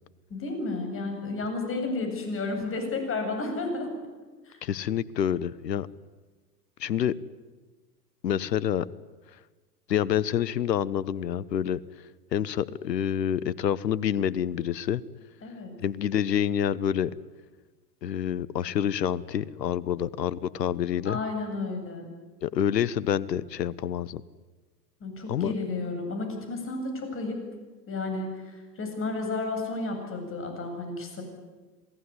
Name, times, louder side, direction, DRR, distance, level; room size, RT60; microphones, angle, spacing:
voice 1, 0.3-3.9 4.4-4.6 15.4-15.7 21.0-22.1 25.0-27.4 27.9-31.2, left 3 dB, 25° left, 4 dB, 8.0 m, -32 dB
voice 2, 4.6-5.9 6.8-7.2 8.2-8.9 9.9-11.8 12.3-15.0 15.8-17.1 18.0-21.2 22.4-24.2 25.3-25.5, left 9 dB, 80° left, 21 dB, 1.1 m, -27 dB
27.0 x 18.5 x 9.8 m, 1.3 s
hypercardioid pair, 100°, 49 cm